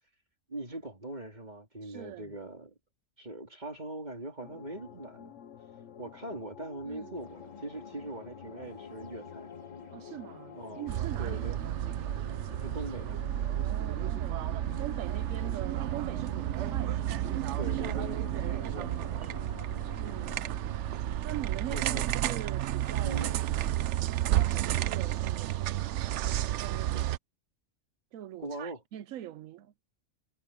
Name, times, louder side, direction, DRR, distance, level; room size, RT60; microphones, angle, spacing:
voice 1, 0.5-2.7 3.2-5.4 6.0-9.5 10.5-10.9 11.2-11.7 12.5-13.2 15.4-15.5 17.6-19.4 21.7-22.0 23.0-23.4 26.9-27.1 28.4-28.8, right 1 dB, 35° right, 3.6 m, -41 dB
voice 2, 1.8-2.3 6.8-7.2 9.9-11.8 13.5-17.4 19.1-19.4 20.0-20.4 21.2-22.0 22.2-23.2 24.2-27.0 28.1-29.7, right 12 dB, 90° right, 1.0 m, -43 dB
sound 1, 4.4-20.4, left 9 dB, 65° left, 1.1 m, -50 dB
sound 2, 7.1-21.4, left 3 dB, 35° left, 2.4 m, -51 dB
sound 3, 10.9-27.2, right 13 dB, 70° right, 0.8 m, -31 dB
omnidirectional pair, 1.3 m